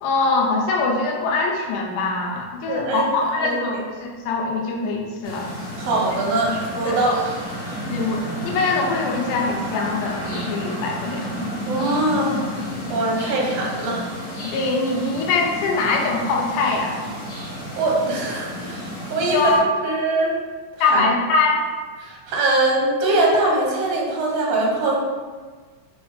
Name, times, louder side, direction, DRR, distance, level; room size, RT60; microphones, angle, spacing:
voice 1, 0.0-5.5 6.5-6.6 6.9-7.0 7.9-11.4 14.4-17.0 19.3-19.6 20.8-21.6, left 3 dB, 80° left, -1 dB, 2.1 m, -23 dB
voice 2, 2.7-3.0 3.4-3.8 5.8-7.2 11.7-12.4 12.9-14.1 17.7-19.5 19.8-20.4 20.9-21.1 22.0-25.0, right 2 dB, 75° right, -2 dB, 1.5 m, -22 dB
sound 1, 5.2-19.6, equal, 60° left, 0.9 m, -31 dB
6.5 x 2.3 x 3.2 m, 1.5 s
omnidirectional pair, 3.7 m